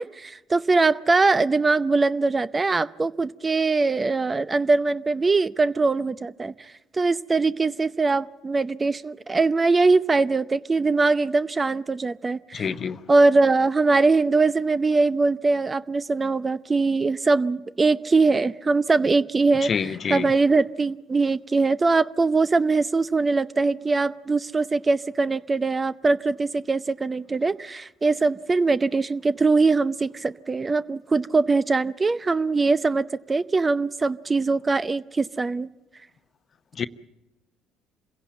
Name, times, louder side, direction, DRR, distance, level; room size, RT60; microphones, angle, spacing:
voice 1, 0.0-6.5 6.9-12.7 13.1-35.7, right 3 dB, 25° right, 0.7 m, -22 dB
voice 2, 12.5-13.0 19.7-20.3 36.8-36.9, left 6 dB, 45° left, 0.8 m, -26 dB
26.5 x 16.5 x 7.5 m
hypercardioid pair, 65°, 0 cm